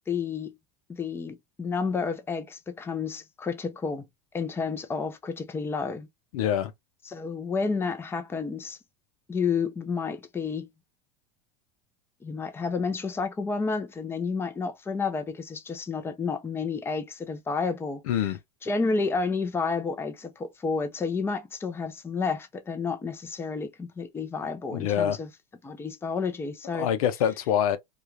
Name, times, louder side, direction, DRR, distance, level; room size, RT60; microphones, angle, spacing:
voice 1, 0.1-0.5 0.9-4.0 4.3-6.1 7.1-8.8 9.3-10.7 12.2-18.3 18.6-25.3 25.6-26.9, left 4 dB, 15° left, 0.6 m, -30 dB
voice 2, 6.3-6.7 18.1-18.4 24.7-25.2 26.8-27.8, left 9 dB, 80° left, 0.6 m, -25 dB
2.4 x 2.3 x 3.0 m
supercardioid pair, 120°, 18 cm